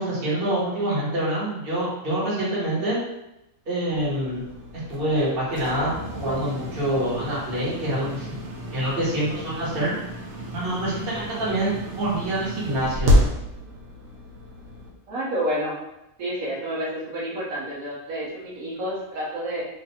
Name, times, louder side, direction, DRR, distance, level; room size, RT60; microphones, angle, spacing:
voice 1, 0.0-3.0 3.7-4.4 4.9-8.3 8.7-10.0 10.5-13.1, right 1 dB, 45° right, -7 dB, 1.4 m, -26 dB
sound 1, 3.9-14.9, left 1 dB, 70° right, 1.1 m, -29 dB
voice 2, 15.1-15.8 16.2-19.6, equal, 90° right, -5 dB, 1.4 m, -29 dB
3.2 x 2.4 x 4.1 m, 0.88 s
omnidirectional pair, 1.4 m